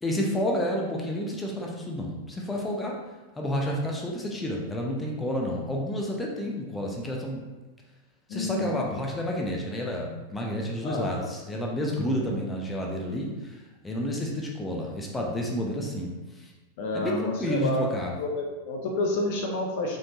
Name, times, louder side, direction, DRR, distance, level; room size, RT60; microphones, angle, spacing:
voice 1, 0.0-3.0 3.4-7.4 8.3-16.5 16.9-18.1, equal, 10° left, -1 dB, 0.8 m, -30 dB
voice 2, 8.3-8.8 10.8-11.3 16.8-17.9 18.2-20.0, left 2 dB, 50° left, 1 dB, 0.7 m, -29 dB
5.0 x 3.6 x 2.9 m, 1.2 s
figure-of-eight pair, 90°, 0 cm